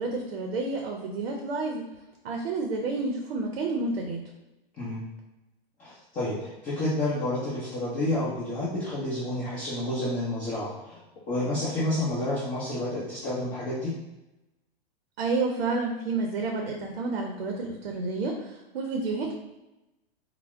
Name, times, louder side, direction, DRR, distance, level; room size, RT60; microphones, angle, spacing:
voice 1, 0.0-1.8 2.2-4.2 15.2-19.3, right 3 dB, 90° right, 1 dB, 0.5 m, -30 dB
voice 2, 4.8-5.1 5.8-13.9, left 1 dB, 25° left, -9 dB, 0.8 m, -30 dB
4.4 x 2.0 x 2.2 m, 0.99 s
hypercardioid pair, 135°, 29 cm